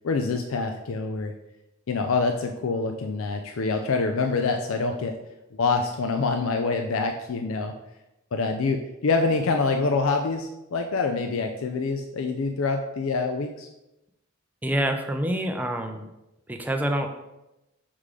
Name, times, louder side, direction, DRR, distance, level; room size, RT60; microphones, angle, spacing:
voice 1, 0.0-1.3 1.9-5.1 5.5-7.7 8.3-13.7, left 4 dB, 70° left, 5 dB, 0.5 m, -26 dB
voice 2, 14.6-16.0 16.5-17.1, right 1 dB, 10° right, 4 dB, 0.5 m, -26 dB
6.5 x 3.7 x 4.9 m, 0.94 s
head